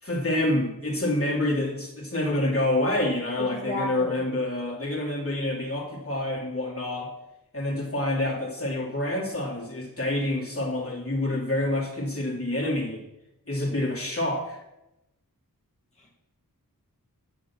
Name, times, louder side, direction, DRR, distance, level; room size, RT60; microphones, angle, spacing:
voice 1, 0.0-7.1 7.5-13.0 13.5-14.6, left 1 dB, 40° left, -3 dB, 2.6 m, -27 dB
voice 2, 3.4-4.3 16.0-16.1, left 1 dB, 20° left, -5 dB, 1.8 m, -34 dB
9.4 x 6.5 x 5.9 m, 0.91 s
wide cardioid pair, 60°, 35 cm